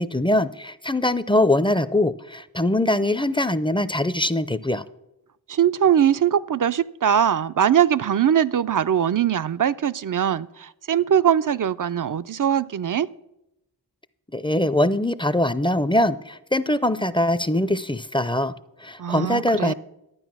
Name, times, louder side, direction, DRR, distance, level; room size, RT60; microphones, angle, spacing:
voice 1, 0.0-4.8 14.3-18.5 18.8-19.7, left 1 dB, 10° left, 15 dB, 0.5 m, -22 dB
voice 2, 5.5-13.1 19.0-19.7, right 9 dB, 55° right, 14 dB, 0.5 m, -21 dB
12.5 x 9.1 x 6.0 m, 0.86 s
cardioid pair, 40°, 40 cm